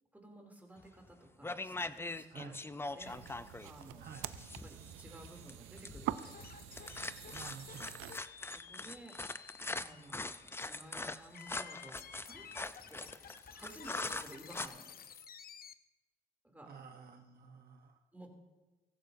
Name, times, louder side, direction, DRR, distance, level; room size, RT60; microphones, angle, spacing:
voice 1, 0.1-3.4 3.6-4.3 4.6-6.6 8.5-9.4 9.8-12.5 12.9-13.1 13.5-14.9 16.4-16.8 18.1-18.3, right 1 dB, 10° right, 1 dB, 2.7 m, -55 dB
sound 1, 0.9-1.1 1.4-14.7, left 2 dB, 10° left, 0.4 m, -42 dB
voice 2, 2.3-2.6 4.0-4.3 7.3-7.9 16.7-18.0, right 6 dB, 50° right, 4 dB, 1.0 m, -51 dB
sound 2, 3.0-8.2, right 14 dB, 90° right, 0.4 m, -45 dB
sound 3, 6.2-15.7, left 7 dB, 50° left, 0.7 m, -54 dB
16.5 x 15.0 x 2.6 m, 1.1 s
cardioid pair, 90°, 20 cm